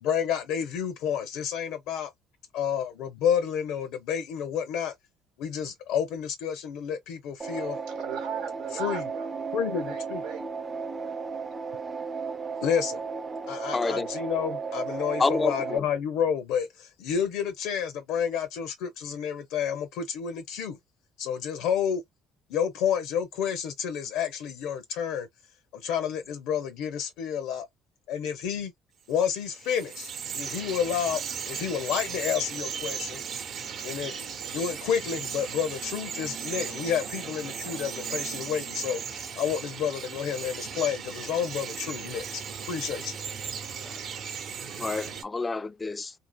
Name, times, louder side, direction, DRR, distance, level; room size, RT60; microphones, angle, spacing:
voice 1, 0.0-2.1 2.5-4.9 5.4-7.8 8.7-9.0 9.5-10.2 12.6-13.0 13.5-20.8 21.2-22.0 22.5-25.3 25.7-27.7 28.1-28.7 29.1-30.1 30.3-31.2 31.5-33.2 33.8-42.4 42.7-43.2, left 8 dB, 80° left, 0.6 m, -30 dB
sound 1, 7.4-15.8, right 5 dB, 25° right, 0.5 m, -34 dB
voice 2, 7.9-9.4 9.7-10.5, right 9 dB, 90° right, 0.9 m, -38 dB
voice 3, 13.7-14.1 15.2-15.8 43.8-44.0 44.8-46.1, left 3 dB, 20° left, 0.3 m, -28 dB
Bird vocalization bird call bird song, 29.1-45.2, right 7 dB, 55° right, 0.8 m, -36 dB
2.8 x 2.7 x 2.2 m
supercardioid pair, 85°, 0 cm